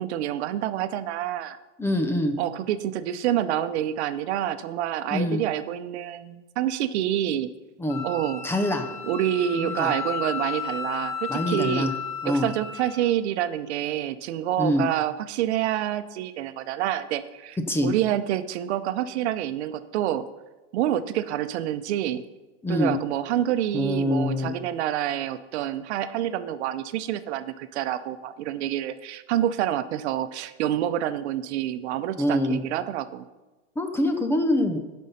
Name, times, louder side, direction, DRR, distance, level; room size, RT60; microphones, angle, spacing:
voice 1, 0.0-1.6 2.4-7.5 8.0-8.5 9.0-11.9 12.2-20.3 20.7-22.2 22.7-33.2, right 11 dB, 80° right, 12 dB, 0.7 m, -27 dB
voice 2, 1.8-2.3 5.1-5.4 7.8-8.0 8.4-8.9 9.6-9.9 11.3-11.9 12.2-12.5 14.6-14.8 17.7-17.9 22.6-22.9 23.7-24.5 32.2-32.6 33.8-34.8, left 1 dB, 5° left, 6 dB, 0.6 m, -24 dB
Wind instrument woodwind instrument, 7.9-13.0, left 6 dB, 35° left, 3.2 m, -33 dB
11.5 x 5.5 x 5.5 m, 1.1 s
supercardioid pair, 150°, 33 cm